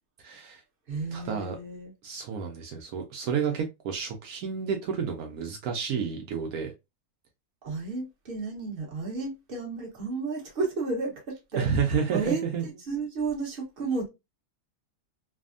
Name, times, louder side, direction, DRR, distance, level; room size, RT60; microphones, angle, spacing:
voice 1, 0.2-0.6 1.1-1.6 2.0-6.7 11.6-12.7, right 6 dB, 80° right, 1.0 m, -30 dB
voice 2, 0.9-1.9 7.6-11.7 12.1-14.1, right 4 dB, 40° right, 1.2 m, -32 dB
3.3 x 2.0 x 2.4 m
omnidirectional pair, 1.6 m